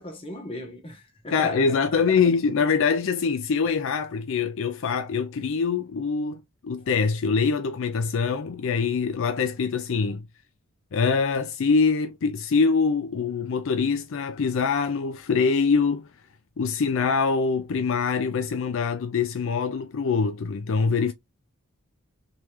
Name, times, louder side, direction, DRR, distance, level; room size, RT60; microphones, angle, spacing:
voice 1, 0.0-2.2, left 1 dB, 25° left, 1.2 m, -37 dB
voice 2, 1.3-10.2 10.9-16.1 16.6-21.1, left 5 dB, 60° left, 0.4 m, -24 dB
3.6 x 3.1 x 3.0 m
head